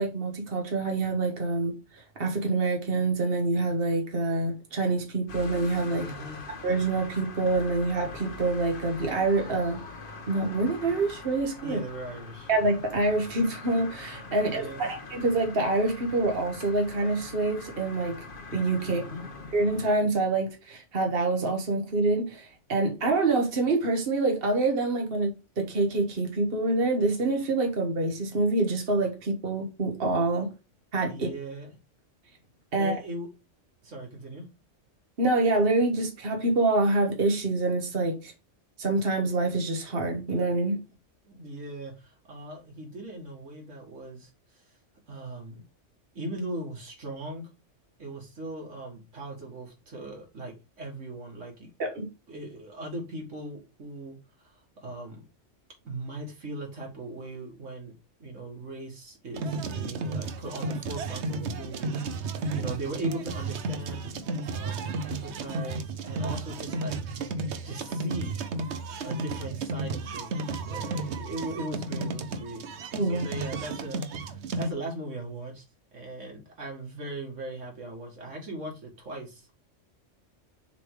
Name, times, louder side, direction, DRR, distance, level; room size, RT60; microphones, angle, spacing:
voice 1, 0.0-6.1 6.6-9.8 10.3-11.8 12.5-18.2 18.5-19.0 19.5-30.5 30.9-31.3 32.7-32.9 35.2-38.3 38.8-40.8 51.8-52.1 73.0-73.3, right 2 dB, 50° right, 1.6 m, -26 dB
sound 1, 5.3-19.9, left 3 dB, 50° left, 1.2 m, -43 dB
voice 2, 6.0-6.4 11.6-12.5 14.4-14.9 18.8-19.3 31.1-31.7 32.7-33.3 33.8-34.5 41.2-44.3 45.1-45.6 46.1-47.5 48.0-51.7 52.3-54.2 54.4-54.5 54.8-55.2 55.8-64.1 64.5-67.0 67.6-68.3 69.0-72.7 73.0-74.0 74.6-75.6 75.9-79.5, right 2 dB, 85° right, 2.4 m, -39 dB
sound 2, 59.4-74.7, right 3 dB, 70° right, 1.0 m, -33 dB
6.8 x 3.5 x 4.8 m
omnidirectional pair, 1.2 m